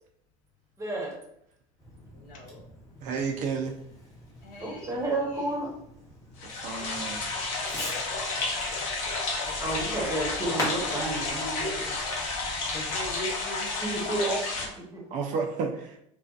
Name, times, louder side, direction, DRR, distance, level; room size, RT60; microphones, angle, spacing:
voice 1, 0.8-1.2 4.6-5.7 9.6-12.0 13.8-15.0, right 2 dB, 15° right, -2 dB, 0.8 m, -31 dB
Fireworks, 1.8-13.2, left 1 dB, 20° left, 0.9 m, -42 dB
voice 2, 2.1-2.6 4.4-5.0 5.3-5.5 9.4-10.0 12.7-13.8, left 1 dB, 50° left, 0 dB, 0.7 m, -41 dB
voice 3, 3.0-3.7 6.4-7.2 15.1-16.0, right 5 dB, 45° right, 3 dB, 0.4 m, -31 dB
sound 1, 6.4-14.7, left 3 dB, 90° left, 0.7 m, -31 dB
2.5 x 2.3 x 2.3 m, 0.73 s
supercardioid pair, 120°, 17 cm